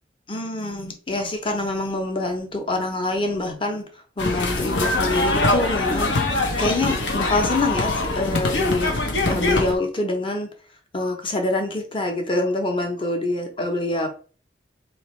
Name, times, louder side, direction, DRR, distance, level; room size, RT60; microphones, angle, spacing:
voice 1, 0.3-3.9 4.2-9.0 9.3-10.5 10.9-14.1, left 2 dB, 30° left, 4 dB, 0.9 m, -25 dB
sound 1, 4.2-9.7, left 2 dB, 80° left, 1.0 m, -23 dB
4.3 x 3.2 x 3.1 m, 0.39 s
head